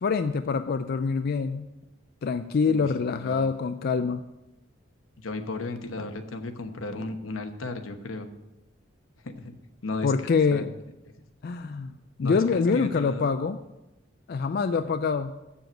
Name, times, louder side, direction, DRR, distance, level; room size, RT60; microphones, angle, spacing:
voice 1, 0.0-1.6 2.2-4.2 10.0-10.7 11.4-11.9 12.2-13.6 14.3-15.4, left 5 dB, 50° left, 9 dB, 0.4 m, -25 dB
voice 2, 2.7-3.5 5.2-8.3 9.2-9.5 9.8-10.1 10.5-10.6 12.2-13.3 14.8-14.9, left 2 dB, 85° left, 7 dB, 1.0 m, -34 dB
7.7 x 7.0 x 7.8 m, 0.97 s
head